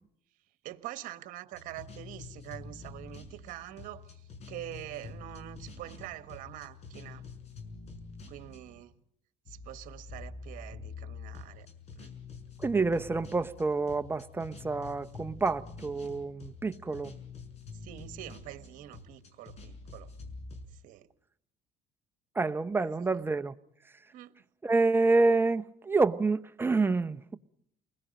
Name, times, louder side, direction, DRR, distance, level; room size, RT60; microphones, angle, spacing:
voice 1, 0.6-7.3 8.3-8.9 9.5-11.7 11.9-12.1 17.7-20.1 20.7-21.1 22.8-23.1 24.1-24.4, right 14 dB, 70° right, 1.3 m, -45 dB
sound 1, 1.5-8.8 9.5-20.7, left 4 dB, 50° left, 5.8 m, -47 dB
voice 2, 12.6-17.1 22.3-23.5 24.6-27.4, right 3 dB, 15° right, 0.8 m, -28 dB
29.5 x 21.0 x 5.2 m
cardioid pair, 100°, 14 cm